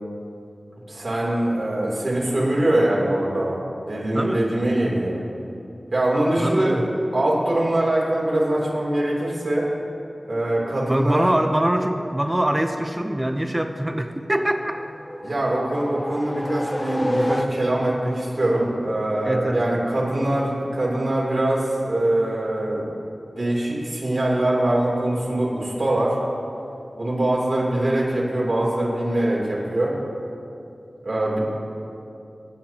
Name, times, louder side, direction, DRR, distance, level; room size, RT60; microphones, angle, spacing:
voice 1, 0.9-5.2 5.9-9.7 10.3-11.3 15.2-22.9 23.3-26.2 27.0-30.0 31.0-31.4, right 1 dB, 55° right, -5 dB, 3.2 m, -23 dB
voice 2, 6.4-6.8 10.9-14.8 19.2-19.6, right 1 dB, 20° right, 6 dB, 0.7 m, -23 dB
sound 1, 14.7-18.0, left 1 dB, 20° left, 0.5 m, -29 dB
23.5 x 9.4 x 3.0 m, 2.7 s
wide cardioid pair, 55°, 0 cm